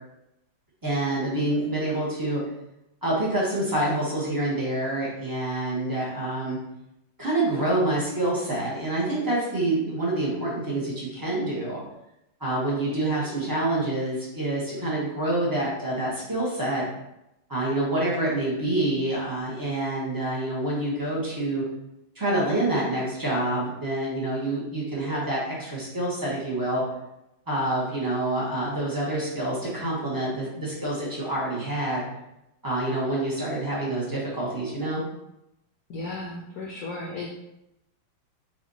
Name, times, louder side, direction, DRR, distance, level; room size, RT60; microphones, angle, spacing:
voice 1, 0.8-2.4 3.0-6.6 7.2-11.8 12.4-16.8 17.5-21.6 22.2-26.8 27.5-32.0 32.6-35.0, right 1 dB, 30° right, -6 dB, 0.4 m, -27 dB
voice 2, 35.9-37.3, left 2 dB, 75° left, -2 dB, 0.8 m, -35 dB
5.5 x 2.4 x 2.7 m, 0.87 s
omnidirectional pair, 2.1 m